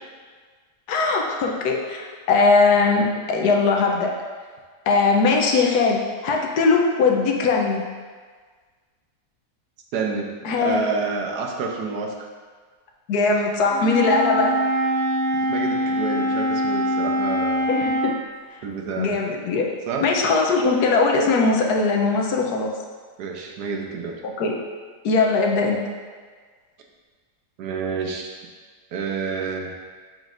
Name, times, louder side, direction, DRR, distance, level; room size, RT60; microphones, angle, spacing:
voice 1, 0.9-4.1 4.9-7.8 10.4-10.8 13.1-14.6 17.7-18.1 19.0-19.7 20.0-22.7 24.2-24.5 25.0-25.8, left 4 dB, 80° left, 0 dB, 1.3 m, -20 dB
voice 2, 9.9-10.3 10.6-12.1 15.5-17.6 18.6-19.1 19.9-20.1 23.2-24.2 27.6-28.3 28.9-29.8, right 5 dB, 85° right, 1 dB, 1.3 m, -28 dB
Wind instrument woodwind instrument, 13.7-18.1, equal, 45° right, 1.9 m, -23 dB
7.2 x 5.2 x 2.5 m, 1.5 s
omnidirectional pair, 1.7 m